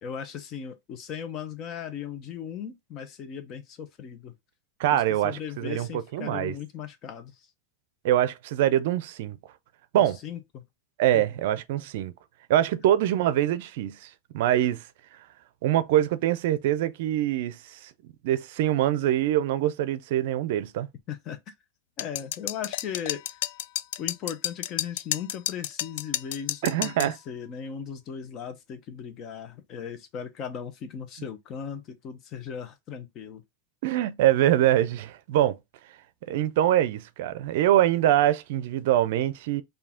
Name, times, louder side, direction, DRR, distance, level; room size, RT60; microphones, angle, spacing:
voice 1, 0.0-4.3 4.9-7.5 10.0-10.6 11.1-11.2 21.1-21.5 22.0-23.4 24.0-33.4, left 8 dB, 40° left, 0.9 m, -37 dB
voice 2, 4.8-6.5 8.0-9.4 9.9-10.2 11.0-12.1 12.5-14.8 15.6-17.8 18.2-20.9 26.6-27.2 33.8-35.6 36.3-39.6, right 12 dB, 70° right, 0.4 m, -24 dB
sound 1, 22.0-27.1, left 13 dB, 70° left, 0.3 m, -31 dB
4.6 x 2.7 x 3.6 m
supercardioid pair, 125°, 0 cm